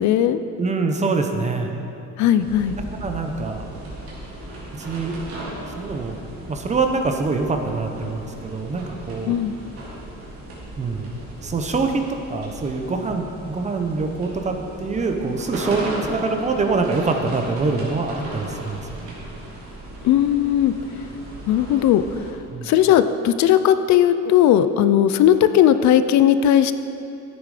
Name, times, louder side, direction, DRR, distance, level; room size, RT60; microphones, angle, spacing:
voice 1, 0.0-0.4 2.2-2.8 9.3-9.6 20.0-20.7 21.5-22.3 22.6-26.7, left 10 dB, 60° left, 12 dB, 0.5 m, -17 dB
voice 2, 0.6-1.7 3.0-3.7 4.7-5.1 5.7-9.4 10.8-11.1 11.4-19.2 22.5-22.7, right 3 dB, 20° right, 4 dB, 0.9 m, -25 dB
sound 1, 2.4-22.3, right 1 dB, 45° right, 3.4 m, -36 dB
14.0 x 9.5 x 5.0 m, 2.9 s
cardioid pair, 170°, 32 cm